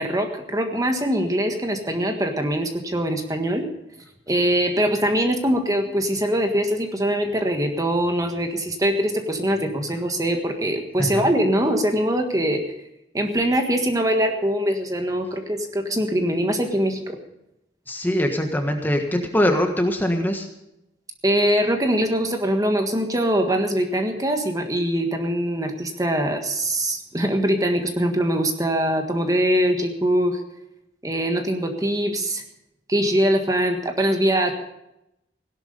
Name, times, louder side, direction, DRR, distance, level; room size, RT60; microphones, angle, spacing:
voice 1, 0.0-3.6 4.3-12.6 13.1-17.2 21.2-30.4 31.0-32.4 32.9-34.5, equal, 20° right, 5 dB, 1.6 m, -22 dB
voice 2, 17.9-20.5, equal, 10° left, 4 dB, 1.4 m, -22 dB
17.0 x 12.0 x 5.5 m, 0.85 s
head